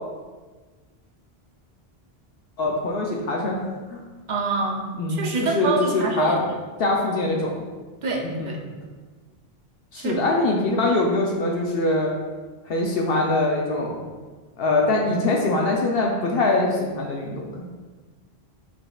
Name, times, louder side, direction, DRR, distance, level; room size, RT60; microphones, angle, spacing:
voice 1, 2.6-3.6 3.9-4.0 5.0-5.2 5.5-6.4 6.8-7.6 8.2-8.5 9.9-12.1 12.7-14.0 14.6-17.6, left 2 dB, 70° left, -1 dB, 0.8 m, -23 dB
voice 2, 4.3-6.4 8.0-8.6 10.0-10.2, right 3 dB, 50° right, 0 dB, 0.7 m, -26 dB
6.3 x 3.3 x 2.3 m, 1.3 s
omnidirectional pair, 1.0 m